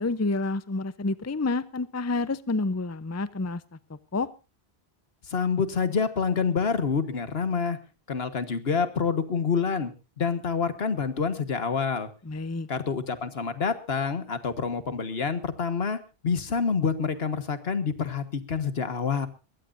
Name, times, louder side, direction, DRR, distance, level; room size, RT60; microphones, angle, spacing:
voice 1, 0.0-3.6 3.9-4.3 12.3-12.7, left 3 dB, 20° left, 16 dB, 0.6 m, -29 dB
voice 2, 5.3-7.8 8.1-9.9 10.2-12.1 12.7-19.3, left 5 dB, 70° left, 11 dB, 1.7 m, -27 dB
22.0 x 16.5 x 2.6 m, 0.31 s
omnidirectional pair, 1.1 m